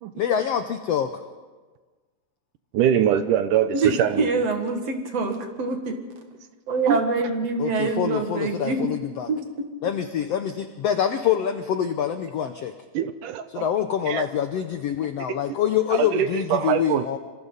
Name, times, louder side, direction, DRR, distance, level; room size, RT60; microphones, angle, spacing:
voice 1, 0.1-1.1 7.6-9.3 9.8-12.7 13.5-17.2, left 9 dB, 80° left, 7 dB, 1.4 m, -25 dB
voice 2, 2.7-4.3 6.9-7.0 12.9-13.7 14.1-14.2 16.0-17.1, right 10 dB, 75° right, 10 dB, 2.3 m, -23 dB
voice 3, 3.7-6.0 6.7-8.9 9.3-9.4, right 3 dB, 50° right, 4 dB, 2.9 m, -25 dB
27.0 x 26.0 x 4.1 m, 1.3 s
omnidirectional pair, 3.9 m